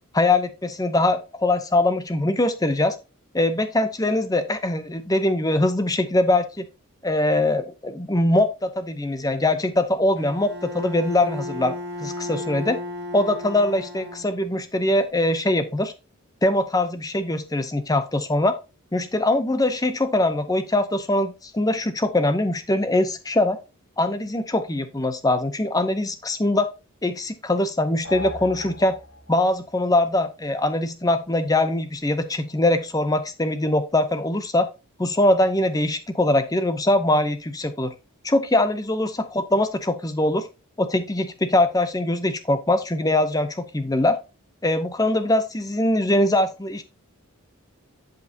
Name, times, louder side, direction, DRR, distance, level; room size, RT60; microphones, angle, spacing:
voice 1, 0.1-3.0 3.3-6.7 7.0-12.8 13.1-15.9 16.4-18.5 18.9-23.6 24.0-26.7 27.0-29.0 29.3-34.7 35.0-37.9 38.2-40.5 40.8-44.2 44.6-46.8, left 1 dB, 15° left, 10 dB, 0.7 m, -22 dB
Bowed string instrument, 10.2-14.7, left 1 dB, 45° right, 1.7 m, -34 dB
sound 1, 28.0-29.6, left 2 dB, 55° left, 2.3 m, -36 dB
10.5 x 5.2 x 2.8 m, 0.29 s
head